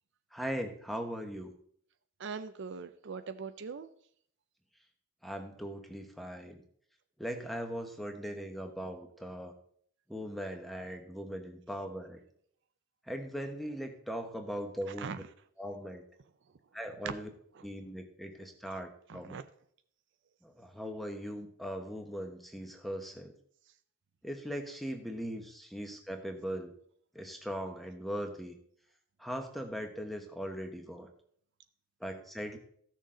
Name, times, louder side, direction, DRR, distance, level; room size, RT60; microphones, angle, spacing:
voice 1, 0.3-1.5 5.2-6.6 7.2-9.5 10.1-12.2 13.1-15.1 15.6-16.0 16.7-17.3 17.6-19.3 20.4-23.3 24.2-26.7 27.1-28.5 29.2-31.1 32.0-32.6, equal, ahead, 4 dB, 1.0 m, -39 dB
voice 2, 2.2-3.9 15.0-15.2 17.0-17.1 17.6-17.7 19.1-19.4, right 5 dB, 55° right, 10 dB, 0.5 m, -40 dB
14.5 x 6.5 x 3.8 m, 0.64 s
head